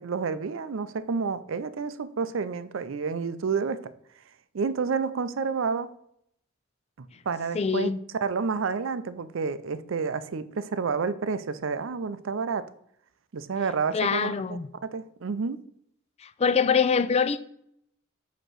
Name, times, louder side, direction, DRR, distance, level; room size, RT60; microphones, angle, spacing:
voice 1, 0.0-3.8 4.5-5.9 7.0-7.9 8.2-12.7 13.3-14.3 14.9-15.6, right 5 dB, 70° right, 0.5 m, -29 dB
voice 2, 7.5-8.0 13.9-14.7 16.2-17.4, left 6 dB, 30° left, 0.4 m, -24 dB
7.8 x 3.0 x 6.1 m
head